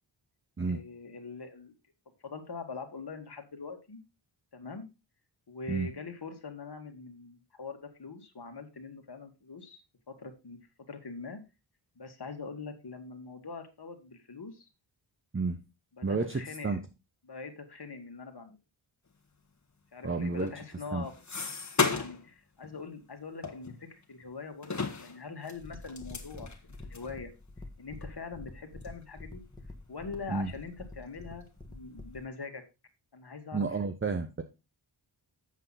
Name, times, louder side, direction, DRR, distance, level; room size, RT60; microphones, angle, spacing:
voice 1, 0.6-1.8 2.2-4.0 4.5-4.9 5.5-9.8 10.1-11.4 12.0-14.7 16.0-16.8 17.2-18.6 19.9-21.1 21.9-26.5 26.8-27.3 27.8-29.4 29.9-32.6 33.1-33.6, left 4 dB, 55° left, 5 dB, 1.8 m, -43 dB
voice 2, 16.0-16.8 20.0-20.5 20.9-21.1 30.3-30.5 33.5-34.4, right 4 dB, 25° right, 8 dB, 0.8 m, -31 dB
sound 1, 20.3-22.3 22.6-22.8 23.4-24.3 24.6-27.1 27.7-27.8 28.0-28.1 28.8-29.0 29.5-30.2 30.5-31.2, left 4 dB, 35° left, 1.6 m, -35 dB
sound 2, 25.6-32.3, left 2 dB, 10° left, 1.7 m, -47 dB
8.0 x 7.5 x 4.1 m, 0.27 s
wide cardioid pair, 100°, 47 cm